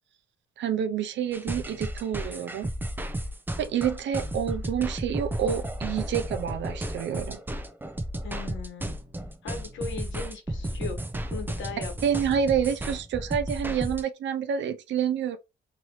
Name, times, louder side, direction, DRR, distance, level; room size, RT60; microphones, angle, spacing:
voice 1, 0.6-2.7 3.6-7.4 12.0-15.4, right 8 dB, 65° right, 0.6 m, -28 dB
sound 1, 1.3-14.0, right 1 dB, 10° right, 0.5 m, -33 dB
voice 2, 8.2-9.0 9.4-11.0 11.3-12.2, left 5 dB, 70° left, 1.2 m, -38 dB
3.0 x 2.7 x 3.0 m
cardioid pair, 90°, 20 cm